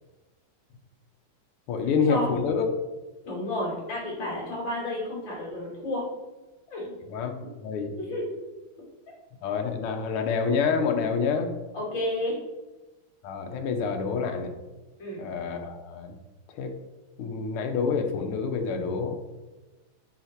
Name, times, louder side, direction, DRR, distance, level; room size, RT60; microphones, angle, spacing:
voice 1, 1.7-2.7 7.1-7.4 7.6-7.9 9.4-11.5 13.2-14.5 15.2-16.2 16.5-16.7 17.2-19.2, left 5 dB, 90° left, 4 dB, 1.7 m, -27 dB
voice 2, 3.3-6.1 6.7-6.9 8.0-8.2 11.7-12.4 15.0-15.2, left 1 dB, 60° left, -5 dB, 3.5 m, -31 dB
6.8 x 4.9 x 4.5 m, 1.1 s
omnidirectional pair, 2.3 m